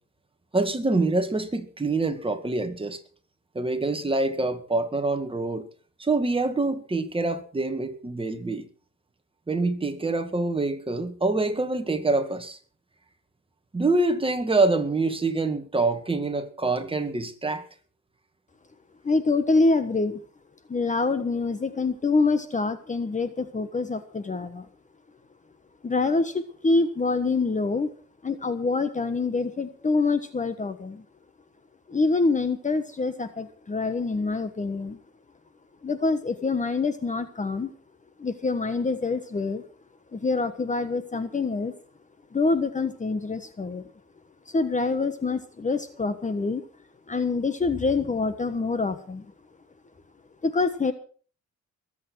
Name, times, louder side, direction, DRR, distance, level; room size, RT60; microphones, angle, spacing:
voice 1, 0.5-3.0 3.5-5.7 6.0-8.7 9.5-12.6 13.7-17.6, right 3 dB, 15° right, 2.0 m, -25 dB
voice 2, 19.0-20.2 20.7-24.7 25.8-27.9 28.2-31.0 31.9-35.0 35.8-37.7 38.2-39.6 40.1-41.7 42.3-43.8 44.5-46.6 47.1-49.3 50.4-50.9, left 3 dB, 25° left, 1.3 m, -26 dB
21.5 x 8.5 x 6.3 m
cardioid pair, 120°, 30 cm